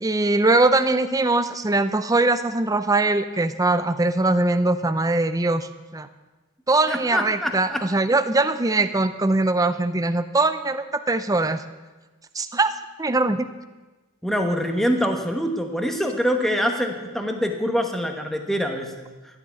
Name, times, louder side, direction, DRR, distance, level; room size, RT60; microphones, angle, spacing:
voice 1, 0.0-6.1 6.7-11.6 12.3-12.7 13.0-13.5, right 2 dB, 15° right, 11 dB, 0.6 m, -21 dB
voice 2, 6.9-7.8 14.2-19.1, equal, ahead, 4 dB, 1.1 m, -24 dB
13.0 x 7.9 x 8.4 m, 1.2 s
head